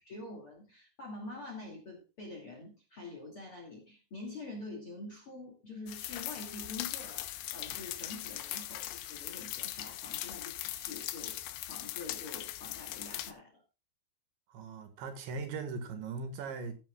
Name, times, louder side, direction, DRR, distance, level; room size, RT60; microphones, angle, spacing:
voice 1, 0.0-11.4 11.7-13.6, left 2 dB, 40° left, 2.3 m, -46 dB
sound 1, 5.9-13.3, left 14 dB, 90° left, 2.2 m, -40 dB
voice 2, 14.5-16.8, right 4 dB, 70° right, 3.6 m, -39 dB
16.0 x 9.9 x 2.3 m
omnidirectional pair, 5.9 m